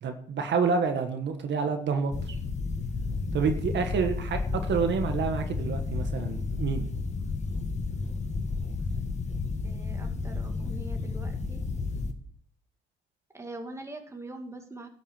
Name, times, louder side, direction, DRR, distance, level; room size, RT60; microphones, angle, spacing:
voice 1, 0.0-2.4 3.3-6.8, right 5 dB, 65° right, 6 dB, 1.6 m, -28 dB
sound 1, 2.1-12.1, left 4 dB, 35° left, 1.6 m, -32 dB
voice 2, 9.6-11.6 13.3-14.9, right 2 dB, 15° right, 3 dB, 2.3 m, -42 dB
12.0 x 6.2 x 7.4 m, 0.63 s
cardioid pair, 90°, 20 cm